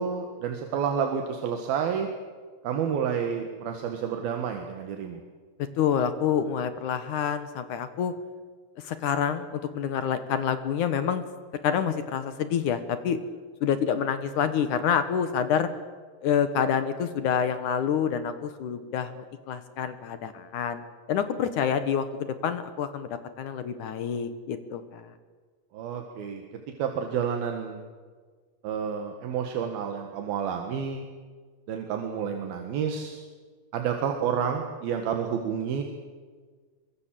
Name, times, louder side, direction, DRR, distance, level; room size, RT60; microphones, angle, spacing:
voice 1, 0.0-2.1 2.6-5.2 25.7-26.4 26.8-27.8 28.6-31.1 31.7-33.3 33.7-35.8, right 7 dB, 75° right, 4 dB, 3.5 m, -29 dB
voice 2, 5.8-8.1 8.8-11.3 11.6-13.2 13.6-15.7 16.2-20.8 21.1-23.1 23.4-25.1, left 8 dB, 65° left, 11 dB, 2.5 m, -27 dB
25.5 x 23.5 x 7.6 m, 1.5 s
omnidirectional pair, 4.4 m